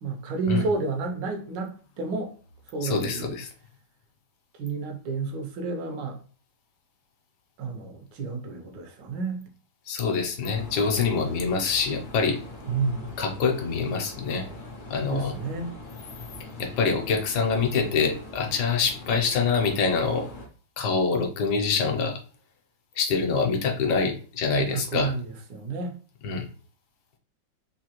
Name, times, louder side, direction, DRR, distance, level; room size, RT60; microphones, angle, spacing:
voice 1, 0.0-2.3 2.7-3.3 4.6-6.2 7.6-9.4 12.7-13.2 15.0-15.7 24.5-26.0, right 4 dB, 75° right, 1.4 m, -30 dB
voice 2, 2.8-3.5 9.9-12.4 13.2-14.5 14.9-15.3 16.6-20.3 20.8-22.2 23.0-25.1 26.2-26.4, left 5 dB, 70° left, 1.3 m, -25 dB
sound 1, 10.4-20.5, left 1 dB, 85° left, 0.4 m, -42 dB
3.8 x 2.7 x 2.9 m
omnidirectional pair, 1.9 m